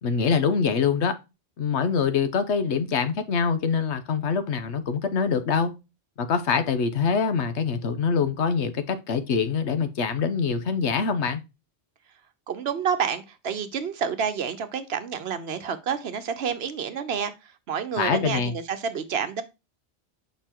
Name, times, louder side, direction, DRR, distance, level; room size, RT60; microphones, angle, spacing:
voice 1, 0.0-1.2 1.6-5.7 6.2-11.4 18.0-18.5, left 6 dB, 80° left, 1.1 m, -24 dB
voice 2, 12.5-19.4, right 7 dB, 70° right, 1.0 m, -29 dB
6.8 x 5.3 x 2.9 m
omnidirectional pair, 1.1 m